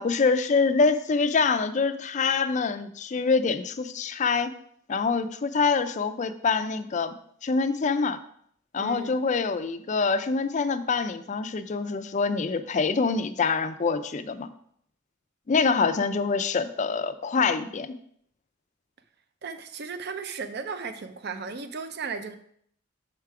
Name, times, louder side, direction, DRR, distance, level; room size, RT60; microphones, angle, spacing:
voice 1, 0.0-4.5 4.9-7.1 7.4-8.2 8.7-14.5 15.5-18.0, left 4 dB, 35° left, 10 dB, 0.4 m, -25 dB
voice 2, 8.8-9.2 19.4-22.4, right 5 dB, 55° right, 9 dB, 0.5 m, -35 dB
6.5 x 4.8 x 4.7 m, 0.65 s
head